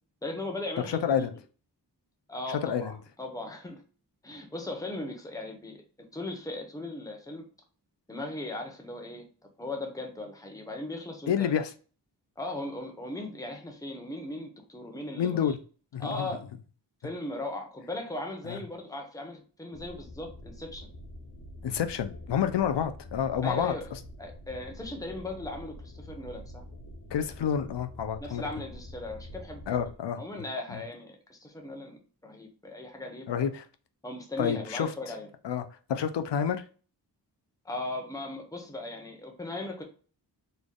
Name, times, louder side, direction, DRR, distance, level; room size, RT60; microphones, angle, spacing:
voice 1, 0.2-1.3 2.3-2.9 3.2-3.8 4.2-7.4 8.1-9.2 9.6-11.5 12.4-15.5 16.0-16.4 17.0-20.9 23.4-23.9 24.2-26.6 28.2-29.8 30.2-33.5 34.0-35.3 37.6-39.8, left 2 dB, 10° left, 3 dB, 0.9 m, -38 dB
voice 2, 0.9-1.3 2.5-2.9 11.3-11.7 15.2-15.6 15.9-16.3 18.4-18.6 21.6-23.7 27.1-28.4 29.7-30.2 30.7-30.8 33.3-33.6 34.4-34.9 35.4-35.6 35.9-36.6, left 8 dB, 80° left, 9 dB, 0.6 m, -28 dB
sound 1, 19.7-30.0, left 1 dB, 35° left, 0.6 m, -46 dB
4.2 x 3.3 x 2.2 m, 0.39 s
wide cardioid pair, 135°, 42 cm